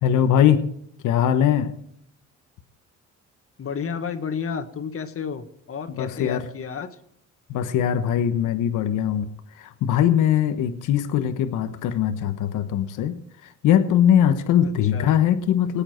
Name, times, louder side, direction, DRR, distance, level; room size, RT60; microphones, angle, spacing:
voice 1, 0.0-0.6 1.0-1.7 5.9-6.4 7.5-9.3 9.6-13.2 13.4-15.8, left 9 dB, 90° left, 9 dB, 1.2 m, -21 dB
voice 2, 3.6-7.0 14.6-15.1, left 6 dB, 50° left, 8 dB, 1.6 m, -32 dB
19.5 x 8.9 x 4.5 m, 0.71 s
cardioid pair, 90°, 30 cm